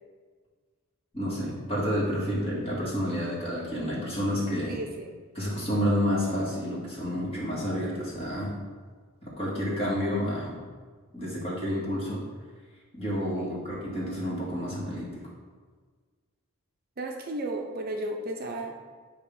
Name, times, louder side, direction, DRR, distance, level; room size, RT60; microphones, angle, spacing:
voice 1, 1.1-4.7 5.4-8.5 9.2-10.6 11.1-12.2 12.9-15.3, equal, 25° left, -6 dB, 1.9 m, -29 dB
voice 2, 4.7-5.2 13.4-13.6 17.0-18.8, right 1 dB, 45° right, 2 dB, 0.5 m, -34 dB
8.1 x 2.8 x 5.3 m, 1.5 s
head